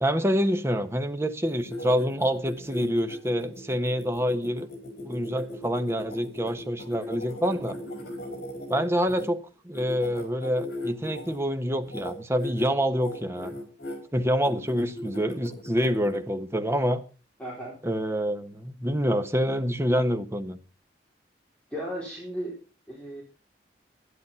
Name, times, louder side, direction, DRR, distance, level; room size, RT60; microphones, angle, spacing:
voice 1, 0.0-4.7 5.0-7.7 8.7-13.5 14.1-17.0 17.8-20.6, equal, 15° right, 1.2 m, -27 dB
sound 1, 1.4-9.2 9.7-11.4 11.8-12.1 12.4-12.7 13.0-14.0 14.4-16.2, left 1 dB, 65° left, 4.8 m, -38 dB
voice 2, 17.4-17.8 21.7-22.6 22.9-23.2, equal, 5° left, 4.4 m, -35 dB
12.5 x 10.5 x 5.7 m
head